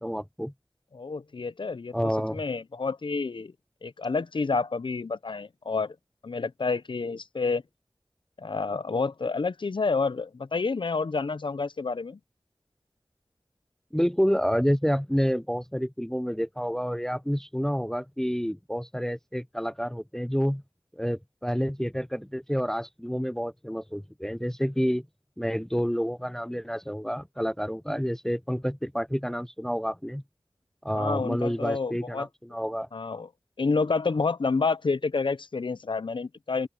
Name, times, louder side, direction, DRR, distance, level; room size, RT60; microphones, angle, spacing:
voice 1, 0.0-0.5 1.9-2.4 13.9-20.6 21.0-25.0 25.4-30.2 30.8-32.9, equal, 5° left, 0.5 m, -29 dB
voice 2, 0.9-3.5 3.8-6.0 6.2-7.6 8.4-12.2 30.9-32.3 32.9-33.3 33.6-36.7, left 4 dB, 70° left, 0.6 m, -29 dB
open air
wide cardioid pair, 50°, 9 cm